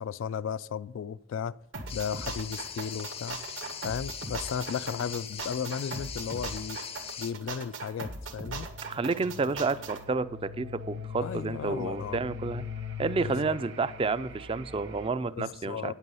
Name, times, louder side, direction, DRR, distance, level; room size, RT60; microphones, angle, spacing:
voice 1, 0.0-1.6 1.9-3.4 3.8-6.8 7.2-8.7 11.2-12.2 13.2-13.6 15.4-15.9, left 7 dB, 85° left, 0.3 m, -35 dB
sound 1, 1.7-10.0, right 3 dB, 85° right, 1.7 m, -39 dB
sound 2, 1.9-7.3, left 7 dB, 30° left, 0.5 m, -41 dB
sound 3, 7.8-15.1, left 5 dB, 60° right, 1.1 m, -42 dB
voice 2, 8.8-12.6 13.0-15.9, right 4 dB, 30° right, 0.3 m, -30 dB
9.5 x 8.1 x 5.5 m
head